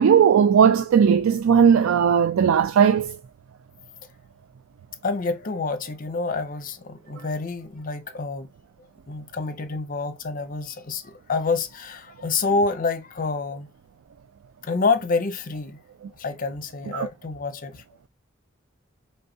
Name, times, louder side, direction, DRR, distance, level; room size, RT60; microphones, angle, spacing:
voice 1, 0.0-3.2 16.9-17.1, right 7 dB, 80° right, 0.3 m, -17 dB
voice 2, 5.0-8.5 9.1-13.7 14.6-15.8 16.2-17.8, left 4 dB, 40° left, 0.6 m, -27 dB
4.5 x 3.2 x 2.6 m
head